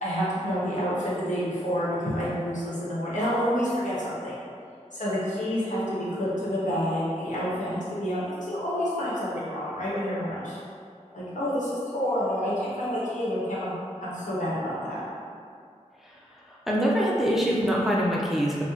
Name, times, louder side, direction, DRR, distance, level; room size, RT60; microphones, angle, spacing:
voice 1, 0.0-4.4 4.9-10.6 11.1-13.7 14.0-15.0, equal, 80° left, -9 dB, 0.9 m, -28 dB
voice 2, 16.5-18.6, equal, ahead, -5 dB, 0.4 m, -24 dB
2.8 x 2.0 x 3.7 m, 2.3 s
wide cardioid pair, 60°, 13 cm